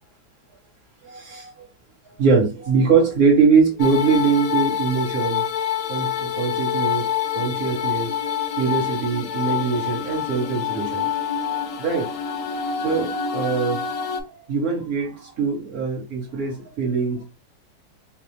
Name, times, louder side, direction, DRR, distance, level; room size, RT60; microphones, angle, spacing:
voice 1, 1.0-1.5 2.2-5.4 5.9-7.1 7.3-8.1 8.6-11.1 11.8-12.1 12.8-13.8 14.3-17.2, right 5 dB, 50° right, 1.7 m, -22 dB
sound 1, 3.8-14.2, left 8 dB, 70° left, 0.8 m, -26 dB
4.5 x 2.3 x 3.3 m
omnidirectional pair, 2.3 m